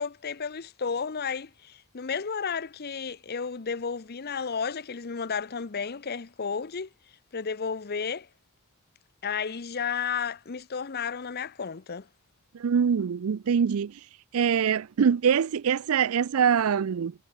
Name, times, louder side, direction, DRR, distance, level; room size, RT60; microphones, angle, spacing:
voice 1, 0.0-6.9 7.3-8.3 9.2-12.1, left 6 dB, 45° left, 0.7 m, -32 dB
voice 2, 12.5-13.9 14.3-17.1, right 7 dB, 70° right, 0.4 m, -24 dB
head